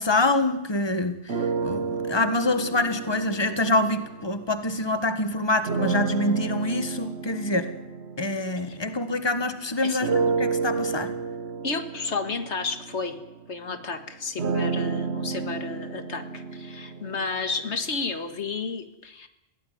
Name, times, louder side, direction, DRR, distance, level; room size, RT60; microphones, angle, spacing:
voice 1, 0.0-7.7 8.2-11.1, left 2 dB, 25° left, 10 dB, 1.6 m, -26 dB
sound 1, 1.3-4.8 5.6-9.4 10.0-18.0, right 5 dB, 70° right, 1.4 m, -31 dB
voice 2, 11.6-13.2 13.5-19.3, left 4 dB, 90° left, 9 dB, 2.0 m, -32 dB
22.0 x 16.5 x 9.5 m, 0.93 s
omnidirectional pair, 1.1 m